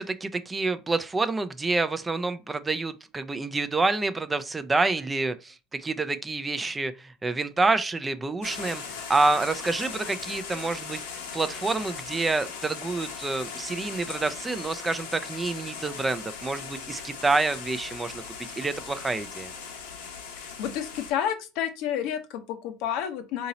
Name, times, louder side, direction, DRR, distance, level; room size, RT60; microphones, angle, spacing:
voice 1, 0.0-11.0 11.3-18.2 18.6-19.5, right 3 dB, 15° right, 0.4 m, -28 dB
sound 1, 8.4-21.1, left 6 dB, 90° left, 1.0 m, -39 dB
voice 2, 20.4-23.5, left 9 dB, 65° left, 0.6 m, -30 dB
2.8 x 2.7 x 4.0 m
supercardioid pair, 95°, 0 cm